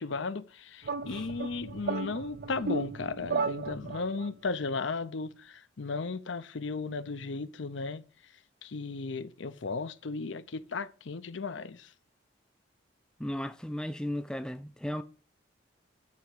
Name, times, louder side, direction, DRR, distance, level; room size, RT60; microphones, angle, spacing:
voice 1, 0.0-8.0 8.6-11.9, left 4 dB, 65° left, 0.6 m, -35 dB
sound 1, 0.8-4.3, right 4 dB, 50° right, 0.5 m, -35 dB
voice 2, 13.2-15.0, left 1 dB, 5° left, 0.4 m, -35 dB
9.4 x 3.5 x 6.6 m
head